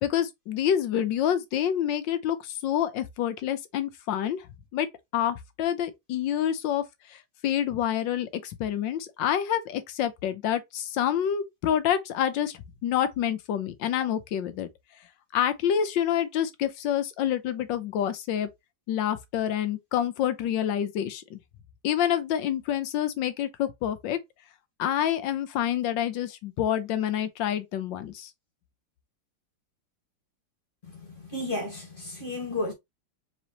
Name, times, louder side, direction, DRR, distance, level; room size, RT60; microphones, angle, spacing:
voice 1, 0.0-4.4 4.7-4.9 5.1-6.8 7.1-14.7 15.3-18.5 18.9-21.4 21.8-24.2 24.8-28.3, left 10 dB, 85° left, 1.4 m, -27 dB
voice 2, 30.9-32.7, left 2 dB, 30° left, 1.7 m, -33 dB
4.1 x 3.6 x 2.9 m
omnidirectional pair, 2.0 m